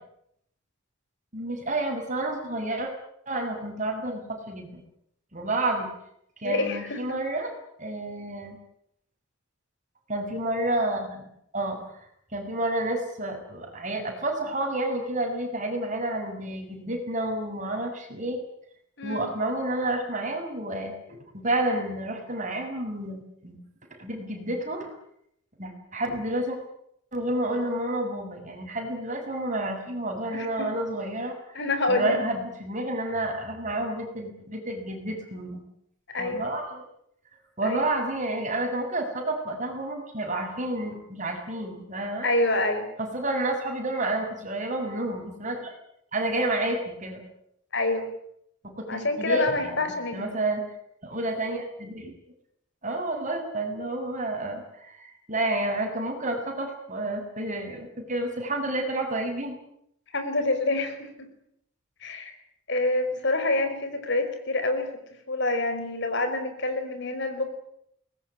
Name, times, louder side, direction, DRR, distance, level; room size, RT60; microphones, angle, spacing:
voice 1, 1.3-2.9 3.3-4.8 5.3-5.9 6.4-7.5 7.8-8.6 10.1-11.3 11.5-11.8 12.3-18.4 19.0-23.6 24.0-24.9 25.6-26.6 27.1-31.3 31.9-35.6 36.2-36.8 37.6-42.3 43.0-45.7 46.1-47.2 48.6-49.8 50.1-50.6 51.0-52.1 52.8-59.6, right 1 dB, 35° right, 3 dB, 7.0 m, -30 dB
voice 2, 6.4-7.2 19.0-19.3 30.3-30.7 31.5-32.3 36.1-36.4 37.6-37.8 42.2-42.9 47.7-48.1 48.9-50.2 60.1-61.3 62.0-62.3 62.7-64.9 65.3-67.5, left 2 dB, 55° left, 8 dB, 5.2 m, -27 dB
23.5 x 20.5 x 10.0 m, 0.72 s
head